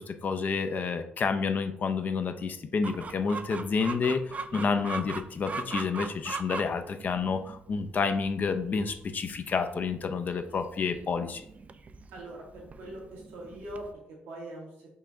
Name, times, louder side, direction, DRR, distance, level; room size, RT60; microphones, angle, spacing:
voice 1, 0.0-11.5, left 5 dB, 50° left, 8 dB, 0.5 m, -29 dB
Chicken rooster, 2.8-13.9, right 4 dB, 40° right, 0.4 m, -41 dB
voice 2, 12.1-13.9 14.3-14.7, right 1 dB, 90° right, -3 dB, 1.3 m, -42 dB
5.5 x 2.3 x 3.8 m, 0.75 s
supercardioid pair, 65°, 4 cm